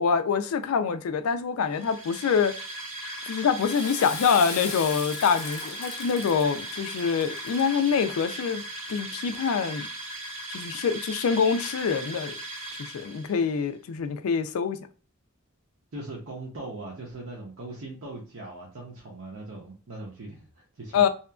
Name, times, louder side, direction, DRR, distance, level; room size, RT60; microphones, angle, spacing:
voice 1, 0.0-2.6 3.3-9.9 10.5-12.3 12.9-14.8 20.9-21.1, left 6 dB, 90° left, 0.4 m, -25 dB
sound 1, 1.7-13.5, right 1 dB, 30° right, 0.7 m, -38 dB
Water / Toilet flush, 3.4-8.6, left 5 dB, 35° left, 0.6 m, -40 dB
voice 2, 15.9-21.1, right 2 dB, 70° right, 0.7 m, -40 dB
2.8 x 2.4 x 2.3 m
head